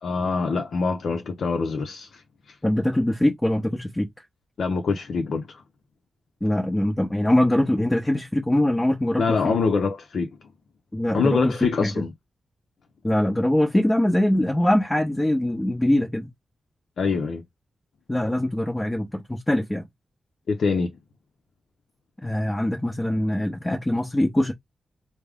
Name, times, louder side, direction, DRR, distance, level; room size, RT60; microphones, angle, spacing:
voice 1, 0.0-2.6 4.6-5.6 9.2-10.3 11.1-12.1 17.0-17.4 20.5-21.0, left 4 dB, 70° left, 0.7 m, -25 dB
voice 2, 2.6-4.2 6.4-9.6 10.9-12.0 13.0-16.3 18.1-19.9 22.2-24.5, left 1 dB, 15° left, 1.0 m, -23 dB
3.4 x 2.2 x 3.6 m
cardioid pair, 65°, 0 cm